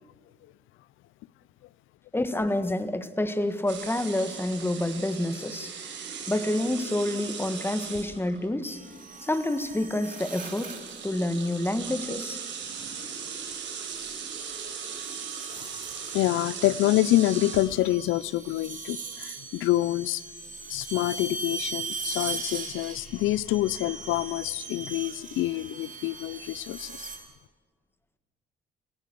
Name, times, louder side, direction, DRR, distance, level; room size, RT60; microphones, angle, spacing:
voice 1, 2.1-5.7 6.3-8.8 9.2-10.7 11.0-12.4, left 1 dB, 10° left, 1.6 m, -28 dB
sound 1, 3.7-8.5 9.6-9.8 10.0-17.9, right 6 dB, 65° right, 5.1 m, -38 dB
sound 2, 8.6-11.0 12.4-12.8 13.6-27.2, right 4 dB, 40° right, 3.6 m, -40 dB
voice 2, 15.5-15.8 16.1-20.2 20.7-27.1, left 15 dB, 85° left, 0.6 m, -27 dB
28.0 x 16.5 x 6.8 m
cardioid pair, 90°, 20 cm